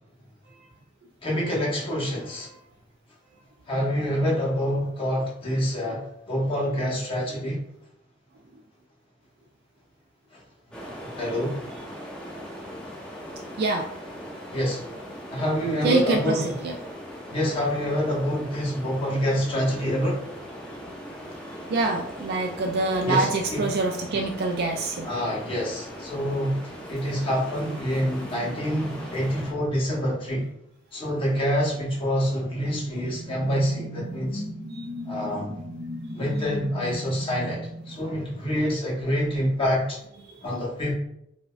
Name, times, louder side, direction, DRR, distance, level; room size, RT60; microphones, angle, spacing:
voice 1, 1.2-2.5 3.7-7.6 10.3-10.4 11.0-11.6 14.5-14.9 15.3-16.5 17.3-20.2 23.0-23.7 25.0-26.6 26.9-30.5 30.9-34.4 35.1-35.6 36.1-40.0 40.4-40.9, equal, 30° left, -4 dB, 1.0 m, -26 dB
sound 1, 10.7-29.5, equal, 5° left, 0.6 m, -40 dB
voice 2, 15.8-16.7 21.7-25.1 34.8-34.9, right 3 dB, 55° right, 3 dB, 0.3 m, -25 dB
sound 2, 32.5-38.8, equal, 30° right, 0.9 m, -37 dB
4.7 x 2.2 x 2.4 m, 0.79 s
head